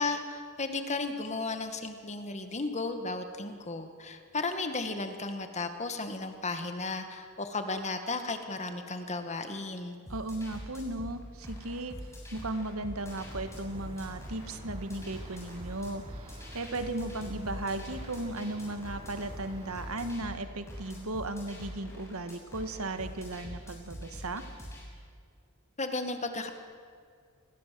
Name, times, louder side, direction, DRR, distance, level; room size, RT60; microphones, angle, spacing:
voice 1, 0.0-10.0 25.8-26.5, left 3 dB, 30° left, 7 dB, 1.9 m, -34 dB
sound 1, 10.1-24.8, equal, 15° left, 7.0 m, -44 dB
voice 2, 10.1-12.0 12.3-24.4, right 2 dB, 75° right, 9 dB, 1.8 m, -36 dB
sound 2, 13.0-20.1, right 1 dB, 25° right, 3.4 m, -49 dB
28.5 x 20.5 x 7.8 m, 2.2 s
head